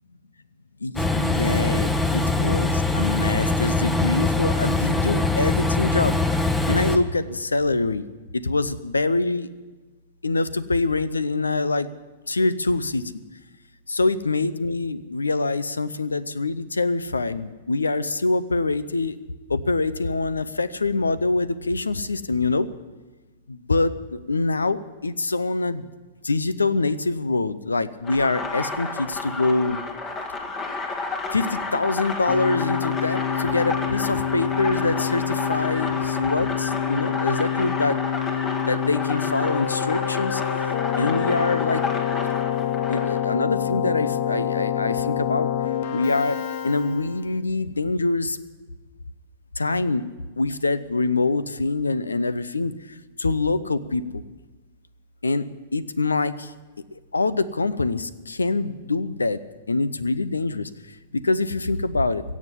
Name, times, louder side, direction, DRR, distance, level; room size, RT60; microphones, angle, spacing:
voice 1, 0.8-6.2 6.7-8.0 8.3-9.5 10.2-11.9 12.3-13.1 13.9-19.2 19.5-22.7 23.5-25.8 26.2-29.8 31.3-38.0 38.7-40.4 41.0-41.8 42.9-45.5 45.9-46.4 46.6-48.4 49.6-50.0 50.4-54.2 55.2-55.5 55.7-56.5 57.1-59.4 59.7-62.2, left 3 dB, 85° left, 17 dB, 0.6 m, -24 dB
Train, 1.0-7.0, left 2 dB, 10° left, 1.1 m, -23 dB
sound 1, 28.0-43.2, left 3 dB, 30° left, 2.0 m, -31 dB
Keyboard (musical), 32.3-47.3, left 10 dB, 55° left, 0.8 m, -27 dB
16.5 x 7.3 x 9.8 m, 1.2 s
hypercardioid pair, 105°, 0 cm